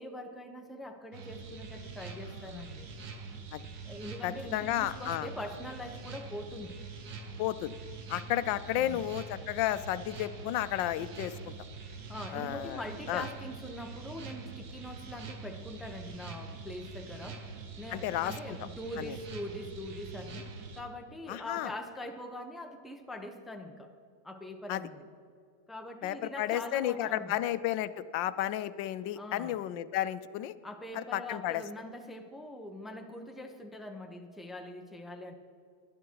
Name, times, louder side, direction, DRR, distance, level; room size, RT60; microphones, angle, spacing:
voice 1, 0.0-2.9 3.8-6.8 8.8-9.0 12.1-17.4 17.8-20.5 20.8-23.9 24.2-25.1 25.7-27.4 29.1-29.6 30.6-35.3, left 1 dB, ahead, 4 dB, 0.6 m, -43 dB
sound 1, 1.1-20.8, right 4 dB, 60° right, 1.8 m, -44 dB
voice 2, 2.3-2.6 3.5-3.7 4.2-5.3 7.4-7.7 8.1-11.5 12.3-12.8 13.1-13.3 17.9-18.6 19.0-19.2 21.3-21.7 24.7-24.9 26.0-30.5 30.9-31.6, left 13 dB, 85° left, 14 dB, 1.3 m, -33 dB
20.5 x 11.0 x 4.7 m, 2.3 s
omnidirectional pair, 2.0 m